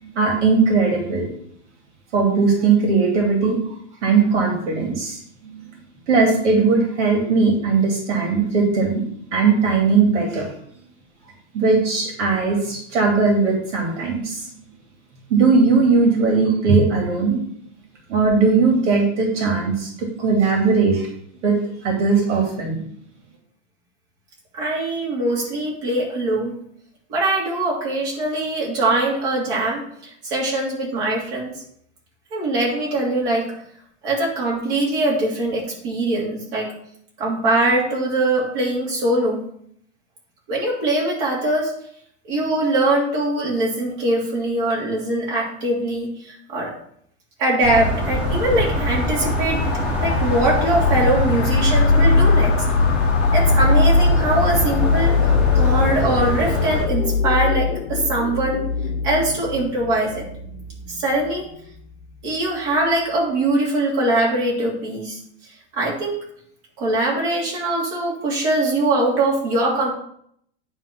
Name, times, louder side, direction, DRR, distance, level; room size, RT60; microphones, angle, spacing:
voice 1, 0.0-1.3 2.1-3.6 4.0-5.6 6.1-9.0 9.3-10.5 11.5-14.5 15.3-17.4 18.1-21.1 21.4-22.8, right 4 dB, 75° right, 0 dB, 2.6 m, -19 dB
voice 2, 24.5-26.6 27.1-31.5 32.3-33.5 34.0-36.7 37.2-39.4 40.5-41.7 42.3-46.7 47.4-49.6 50.0-52.5 53.3-55.2 55.5-58.6 59.0-60.3 60.9-61.5 62.2-65.2 65.7-66.2 66.8-69.9, right 2 dB, 45° right, -4 dB, 3.1 m, -22 dB
sound 1, 47.6-56.8, left 1 dB, 5° right, 1.2 m, -23 dB
sound 2, 50.8-62.1, left 4 dB, 75° left, 1.0 m, -21 dB
9.3 x 3.6 x 5.9 m, 0.67 s
supercardioid pair, 175°, 36 cm